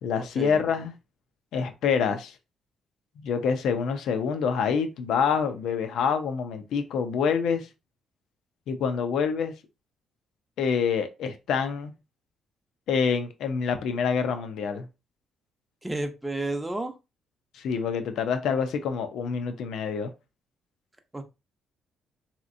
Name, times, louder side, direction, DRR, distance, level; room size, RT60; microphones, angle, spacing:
voice 1, 0.0-0.9 1.5-2.3 3.2-7.7 8.7-9.5 10.6-11.9 12.9-14.9 17.5-20.1, left 6 dB, 80° left, 0.5 m, -26 dB
voice 2, 15.8-16.9 21.1-21.2, right 2 dB, 10° right, 0.6 m, -31 dB
3.2 x 2.9 x 2.5 m
cardioid pair, 90°, 0 cm